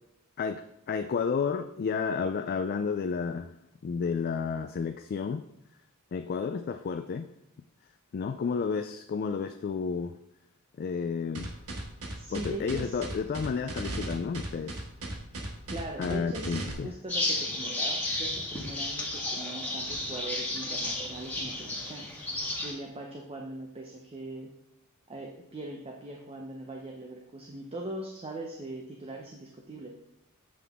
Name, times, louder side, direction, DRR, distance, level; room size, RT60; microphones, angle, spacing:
voice 1, 0.4-3.6 3.8-5.5 6.1-7.3 8.1-10.2 10.8-11.5 12.3-14.9 16.0-16.9, left 5 dB, 45° left, 8 dB, 0.3 m, -31 dB
sound 1, 11.3-16.7, right 2 dB, 80° right, 1.4 m, -36 dB
voice 2, 12.1-13.0 15.7-16.6 16.8-22.1 22.6-24.5 25.1-29.9, right 1 dB, 25° right, 1 dB, 0.7 m, -40 dB
sound 2, 17.1-22.7, left 2 dB, 5° left, 1.7 m, -33 dB
7.7 x 5.7 x 3.5 m, 0.86 s
head